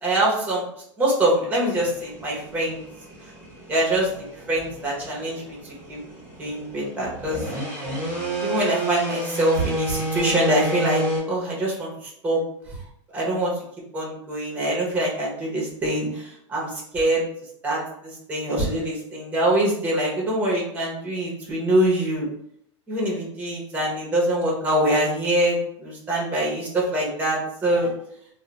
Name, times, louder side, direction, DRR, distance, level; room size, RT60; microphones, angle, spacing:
voice 1, 0.0-0.6 1.0-2.8 3.7-4.1 4.5-5.6 5.9-6.0 6.4-7.4 8.4-11.9 12.2-12.4 13.1-13.5 13.9-17.2 17.6-17.8 18.3-22.3 22.9-27.9, right 1 dB, 10° right, -4 dB, 0.8 m, -24 dB
sound 1, 1.7-11.2, right 1 dB, 5° left, 1.2 m, -30 dB
2.4 x 2.1 x 3.0 m, 0.70 s
supercardioid pair, 145°, 16 cm